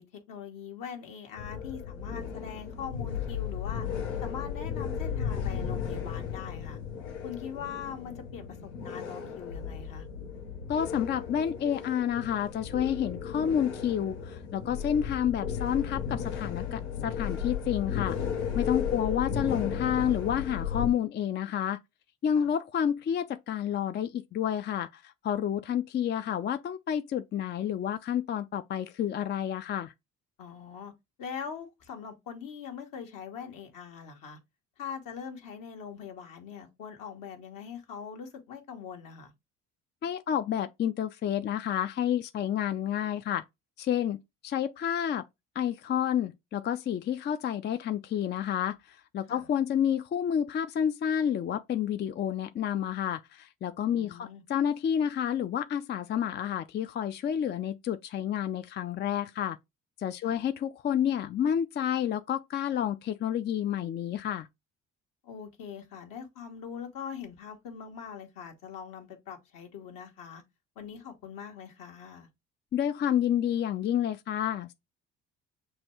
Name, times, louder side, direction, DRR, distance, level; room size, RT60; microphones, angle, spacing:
voice 1, 0.0-3.9 4.2-6.8 7.2-10.1 18.8-19.3 22.3-22.5 30.4-30.9 31.2-34.4 34.8-39.3 49.3-49.5 53.9-54.4 60.2-60.4 65.2-70.4 70.7-72.3, left 7 dB, 65° left, 1.3 m, -42 dB
sound 1, 1.4-20.9, left 7 dB, 90° left, 0.8 m, -35 dB
voice 2, 10.7-18.2 18.6-21.8 22.2-29.9 40.0-43.4 43.8-45.3 45.6-59.6 60.0-64.5 72.7-74.7, left 9 dB, 30° left, 0.4 m, -30 dB
6.2 x 2.3 x 3.0 m
hypercardioid pair, 55°, 34 cm